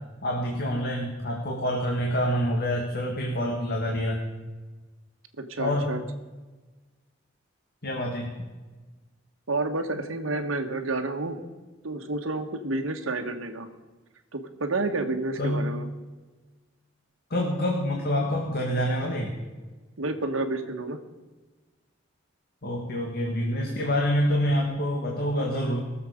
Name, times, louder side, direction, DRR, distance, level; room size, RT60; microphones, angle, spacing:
voice 1, 0.2-4.2 5.6-5.9 7.8-8.3 15.4-15.7 17.3-19.3 22.6-25.8, equal, 50° left, 0 dB, 1.9 m, -27 dB
voice 2, 5.5-6.0 9.5-11.4 11.8-13.7 14.3-15.9 20.0-21.0, right 2 dB, 85° right, 6 dB, 1.3 m, -29 dB
22.0 x 7.3 x 5.1 m, 1.3 s
head